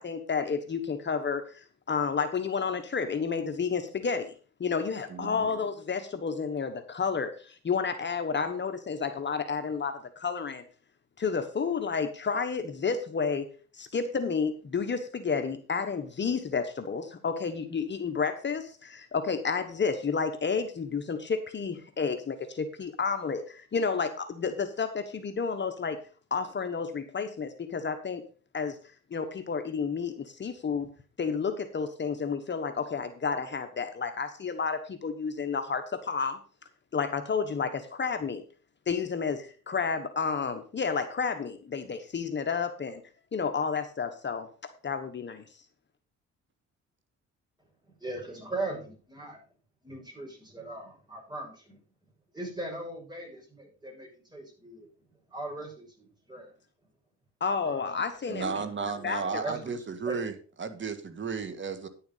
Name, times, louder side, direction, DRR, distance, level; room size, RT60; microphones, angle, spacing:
voice 1, 0.0-4.3 4.6-10.6 11.2-13.5 13.7-26.0 26.3-28.2 28.5-28.8 29.1-30.9 31.2-36.4 36.9-38.4 38.9-43.0 43.3-44.5 44.8-45.4 57.4-58.6 59.0-59.4, left 5 dB, 35° left, 8 dB, 1.2 m, -31 dB
voice 2, 5.1-5.5 58.3-60.3 60.6-61.9, right 5 dB, 40° right, 10 dB, 1.8 m, -34 dB
voice 3, 48.0-49.4 49.8-51.8 52.3-54.9 55.3-56.5 57.6-57.9 58.3-59.6 60.1-60.2, right 2 dB, 15° right, 0 dB, 6.3 m, -39 dB
10.0 x 7.1 x 5.5 m, 0.38 s
cardioid pair, 90°, 30 cm